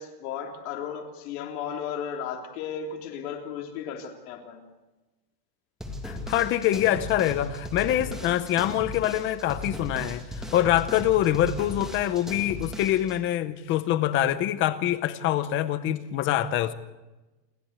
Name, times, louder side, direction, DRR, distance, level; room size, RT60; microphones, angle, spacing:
voice 1, 0.0-4.6, left 7 dB, 60° left, 3.6 m, -35 dB
sound 1, 5.8-13.1, left 1 dB, ahead, 1.9 m, -37 dB
voice 2, 6.0-16.7, left 12 dB, 25° left, 0.7 m, -25 dB
28.5 x 12.0 x 8.1 m
supercardioid pair, 180°, 50 cm